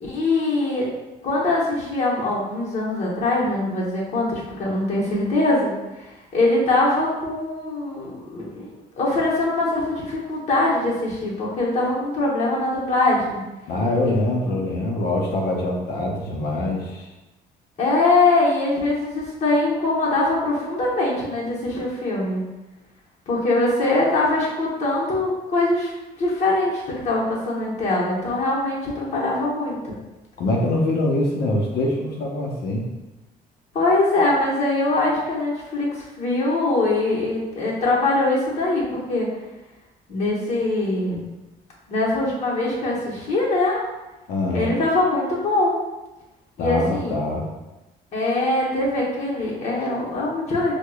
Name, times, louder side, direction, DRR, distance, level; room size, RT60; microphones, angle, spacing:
voice 1, 0.0-0.9 1.2-5.7 6.1-13.4 17.8-22.4 23.3-25.9 26.2-30.0 33.7-39.3 40.1-41.2 41.9-43.8 44.5-45.8 46.6-47.1 48.1-50.7, left 2 dB, 40° left, -5 dB, 1.1 m, -22 dB
voice 2, 13.7-17.1 30.4-32.8 44.3-44.7 46.6-47.5, left 1 dB, 70° left, -2 dB, 0.7 m, -24 dB
4.6 x 2.3 x 2.3 m, 1.0 s
cardioid pair, 110°, 17 cm